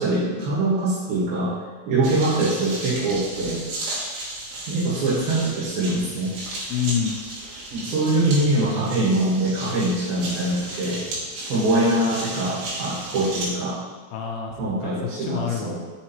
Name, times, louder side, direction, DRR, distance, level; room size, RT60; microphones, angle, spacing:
voice 1, 0.0-1.5 1.9-3.6 4.7-6.4 7.7-11.0 11.5-13.8 14.6-15.8, right 2 dB, 70° right, -7 dB, 3.1 m, -23 dB
sound 1, 2.0-13.4, right 1 dB, 90° right, 3.5 m, -34 dB
voice 2, 6.7-7.2 14.1-15.8, left 8 dB, 80° left, 1 dB, 2.6 m, -28 dB
6.8 x 4.7 x 2.9 m, 1.5 s
omnidirectional pair, 4.8 m